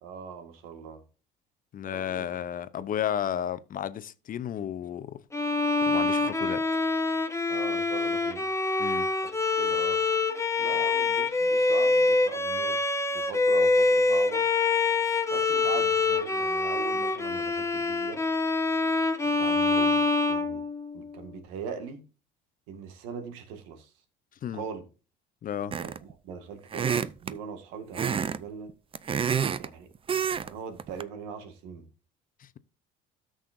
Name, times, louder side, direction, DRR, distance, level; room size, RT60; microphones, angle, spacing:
voice 1, 0.0-1.0 1.9-2.3 7.5-8.5 9.6-10.0 10.6-12.8 13.1-14.5 15.3-18.2 19.2-20.6 20.9-22.0 22.7-23.9 24.5-24.9 25.8-28.7 29.6-29.9 30.2-31.9, right 6 dB, 80° right, 1.9 m, -41 dB
voice 2, 1.7-5.2 5.8-6.6 8.8-9.1 24.4-24.6 25.4-25.7 32.4-32.6, left 10 dB, 40° left, 0.7 m, -33 dB
Bowed string instrument, 5.3-21.2, left 3 dB, 15° left, 1.2 m, -25 dB
sound 1, 25.7-26.1 26.7-27.4 27.9-28.4 28.7-29.7 30.1-30.5 30.8-31.0, right 7 dB, 25° right, 0.5 m, -28 dB
13.0 x 6.4 x 2.6 m
supercardioid pair, 85°, 20 cm